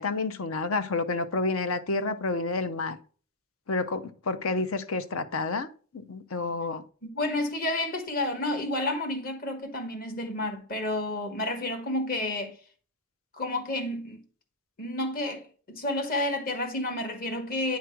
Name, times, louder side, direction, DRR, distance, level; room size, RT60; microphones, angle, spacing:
voice 1, 0.0-3.0 3.7-5.7 5.9-6.8, left 3 dB, 70° left, 0.7 m, -29 dB
voice 2, 7.0-12.6 13.3-14.2 14.8-17.8, left 1 dB, 40° left, 1.3 m, -30 dB
9.3 x 3.2 x 5.9 m
head